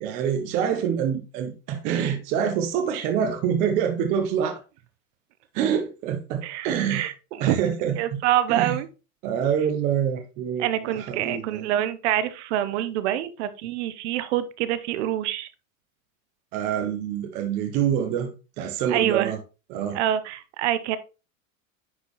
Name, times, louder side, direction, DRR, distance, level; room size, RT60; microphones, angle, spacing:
voice 1, 0.0-4.6 5.5-7.1 7.4-8.2 8.5-8.8 9.2-11.7 16.5-18.3 18.6-19.4 19.7-20.0, right 8 dB, 20° right, 0.4 m, -26 dB
voice 2, 6.4-7.1 7.5-7.7 8.0-8.9 10.6-15.5 18.9-19.3 19.9-21.0, right 12 dB, 55° right, 0.7 m, -26 dB
9.6 x 4.3 x 2.9 m
supercardioid pair, 165°, 43 cm